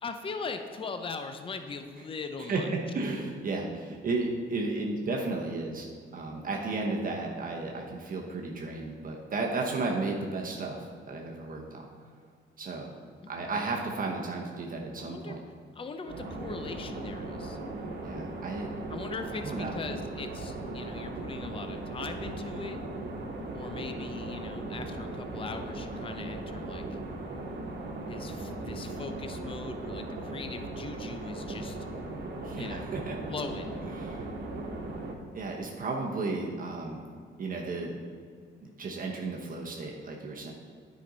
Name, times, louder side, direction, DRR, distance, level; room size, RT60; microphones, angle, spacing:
voice 1, 0.0-2.7 13.2-13.5 15.0-15.4 15.7-17.6 18.9-22.8 23.5-27.0 28.1-31.8 32.6-32.9 33.3-33.8, left 4 dB, 25° left, 7 dB, 0.6 m, -40 dB
voice 2, 2.4-5.9 6.1-11.9 12.6-12.9 13.3-15.4 18.0-18.7 19.4-19.8 32.4-33.2 33.8-34.3 35.3-37.0 37.4-38.0 38.8-40.5, right 3 dB, 45° right, 0 dB, 1.0 m, -33 dB
sound 1, 16.1-35.1, right 2 dB, 60° right, 1.3 m, -38 dB
9.9 x 5.1 x 4.0 m, 2.1 s
cardioid pair, 90°, 20 cm